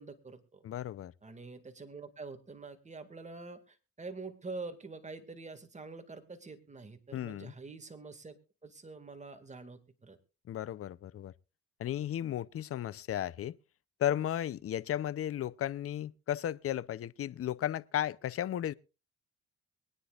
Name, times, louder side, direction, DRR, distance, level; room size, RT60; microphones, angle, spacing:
voice 1, 0.0-0.7 1.2-8.3 8.6-10.2, right 3 dB, 25° right, 2.0 m, -46 dB
voice 2, 0.6-1.1 7.1-7.5 10.5-11.3 11.8-13.5 14.0-18.7, left 11 dB, 50° left, 0.6 m, -34 dB
23.0 x 9.9 x 2.4 m
cardioid pair, 90°, 30 cm